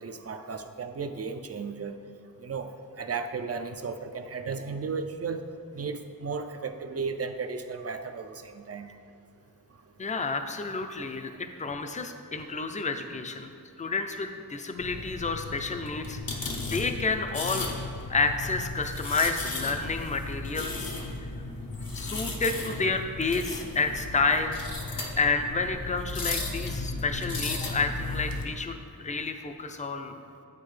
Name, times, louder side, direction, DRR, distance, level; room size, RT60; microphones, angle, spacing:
voice 1, 0.0-2.0 2.4-2.7 3.0-5.4 5.7-8.9 10.9-11.0 12.5-12.6, right 5 dB, 45° right, 7 dB, 0.4 m, -35 dB
voice 2, 10.0-11.3 11.6-13.5 13.8-17.7 18.1-20.9 21.9-30.2, left 4 dB, 20° left, 6 dB, 0.4 m, -30 dB
sound 1, 14.8-28.4, left 3 dB, 70° left, 0.8 m, -35 dB
9.9 x 3.9 x 3.2 m, 2.5 s
wide cardioid pair, 55°, 36 cm